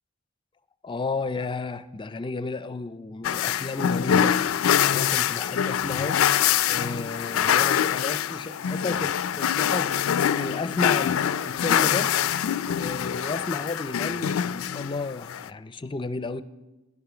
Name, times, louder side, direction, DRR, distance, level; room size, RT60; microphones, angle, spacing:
voice 1, 0.8-4.4 4.8-6.2 6.7-9.9 10.3-12.1 12.8-16.4, left 3 dB, 25° left, 13 dB, 0.4 m, -32 dB
sound 1, 3.2-15.5, left 9 dB, 90° left, 0.4 m, -24 dB
13.0 x 11.0 x 5.0 m, 1.1 s
head